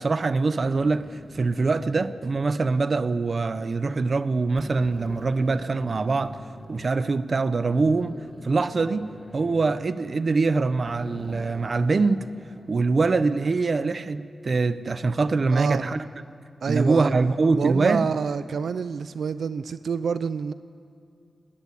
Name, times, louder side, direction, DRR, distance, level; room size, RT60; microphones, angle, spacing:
voice 1, 0.0-6.4 6.7-8.2 8.4-9.1 9.3-12.2 12.7-16.0 16.7-18.1, right 3 dB, 45° right, 0.8 m, -23 dB
sound 1, 0.6-3.5 4.0-4.2 4.6-6.9 7.7-10.5 10.8-13.2, left 1 dB, 25° left, 2.5 m, -44 dB
voice 2, 15.5-15.8 16.6-17.1 17.6-20.5, right 6 dB, 80° right, 0.5 m, -27 dB
20.5 x 19.0 x 9.7 m
wide cardioid pair, 160°, 0 cm